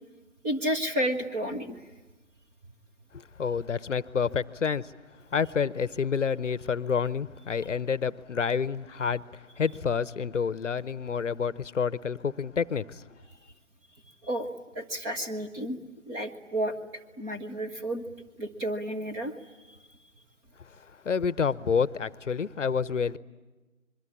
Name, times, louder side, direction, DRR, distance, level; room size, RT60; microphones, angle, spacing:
voice 1, 0.4-1.8 14.2-14.5 14.7-15.8 16.1-18.0 18.4-19.3 19.7-19.8, right 1 dB, 10° right, 3 dB, 1.0 m, -31 dB
voice 2, 3.4-4.9 5.3-9.2 9.6-13.0 21.0-23.2, left 6 dB, 60° left, 19 dB, 0.9 m, -28 dB
26.5 x 22.5 x 9.8 m, 1.1 s
figure-of-eight pair, 140°, 41 cm